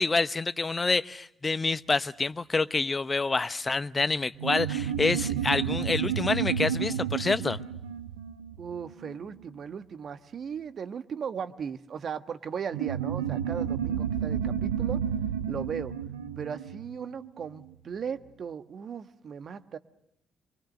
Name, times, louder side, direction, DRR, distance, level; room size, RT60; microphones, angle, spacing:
voice 1, 0.0-7.6, left 3 dB, 30° left, 15 dB, 0.9 m, -27 dB
sound 1, 4.4-9.3 12.7-17.6, right 8 dB, 85° right, 1.3 m, -31 dB
voice 2, 8.6-15.0 15.5-15.9 16.4-19.8, right 7 dB, 50° right, 10 dB, 1.4 m, -37 dB
26.5 x 24.0 x 6.6 m, 0.75 s
hypercardioid pair, 45°, 0 cm